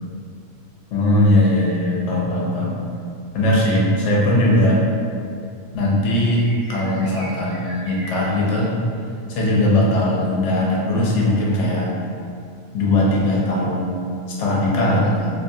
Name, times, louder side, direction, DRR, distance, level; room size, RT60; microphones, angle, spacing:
voice 1, 0.9-2.7 3.3-4.8 5.7-8.7 9.3-11.9 12.7-13.9 14.4-15.3, left 1 dB, 65° left, -5 dB, 0.8 m, -19 dB
sound 1, 6.4-8.7 10.1-10.2, right 1 dB, 50° right, 0.8 m, -38 dB
2.5 x 2.3 x 2.6 m, 2.4 s
omnidirectional pair, 1.4 m